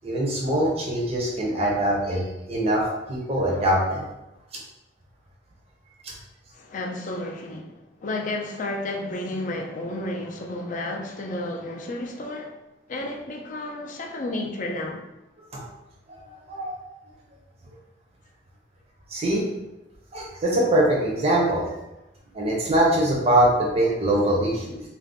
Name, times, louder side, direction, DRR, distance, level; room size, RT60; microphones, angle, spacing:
voice 1, 0.0-2.2 2.5-4.0 15.5-15.6 16.1-16.7 19.1-19.5 20.1-21.7 22.3-24.8, right 1 dB, 35° right, -3 dB, 0.5 m, -23 dB
voice 2, 6.6-12.5 12.9-15.0, left 2 dB, 45° left, 1 dB, 0.4 m, -32 dB
2.5 x 2.1 x 3.5 m, 0.95 s
head